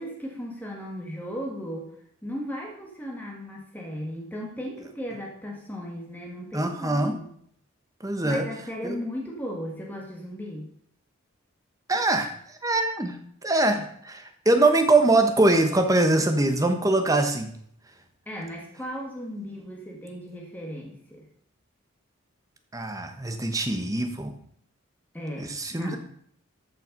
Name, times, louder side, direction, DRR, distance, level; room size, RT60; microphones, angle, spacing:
voice 1, 0.0-1.9 2.2-7.3 8.2-10.7 13.7-13.8 18.2-21.2 25.1-26.0, equal, 10° left, -1 dB, 1.7 m, -36 dB
voice 2, 6.5-7.2 8.0-8.5 8.8-9.0 11.9-17.5 22.7-24.3 25.4-26.0, right 2 dB, 15° right, 6 dB, 1.1 m, -23 dB
13.5 x 5.7 x 5.3 m, 0.65 s
head